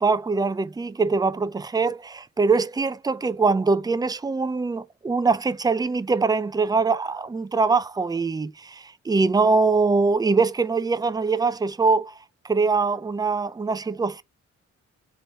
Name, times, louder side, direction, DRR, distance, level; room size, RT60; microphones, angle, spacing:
voice 1, 0.0-12.1 12.4-14.2, right 4 dB, 15° right, 0.4 m, -23 dB
4.1 x 3.1 x 3.0 m
cardioid pair, 55°, 30 cm